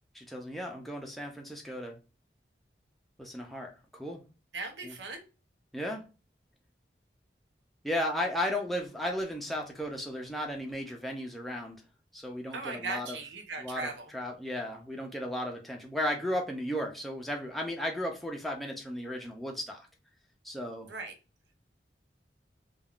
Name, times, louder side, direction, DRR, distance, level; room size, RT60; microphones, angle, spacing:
voice 1, 0.1-2.0 3.2-4.2 4.8-4.9 5.7-6.0 7.8-11.8 12.1-13.2 13.6-19.9 20.4-20.9, left 1 dB, ahead, 0 dB, 0.4 m, -35 dB
voice 2, 4.5-5.2 12.5-14.1 20.9-21.1, right 3 dB, 90° right, 4 dB, 0.7 m, -38 dB
3.4 x 2.3 x 2.3 m, 0.31 s
head